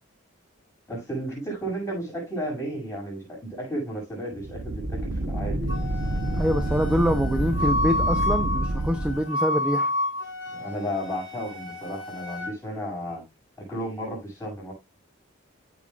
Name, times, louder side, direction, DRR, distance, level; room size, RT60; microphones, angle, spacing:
voice 1, 0.9-5.8 10.5-13.2 13.7-14.7, equal, 15° left, 7.2 m, -33 dB
sound 1, 4.3-9.2, right 1 dB, 65° right, 1.0 m, -28 dB
Wind instrument woodwind instrument, 5.7-12.5, left 2 dB, 70° left, 3.5 m, -30 dB
voice 2, 6.4-9.9, equal, 5° right, 0.7 m, -25 dB
16.0 x 5.8 x 2.5 m
head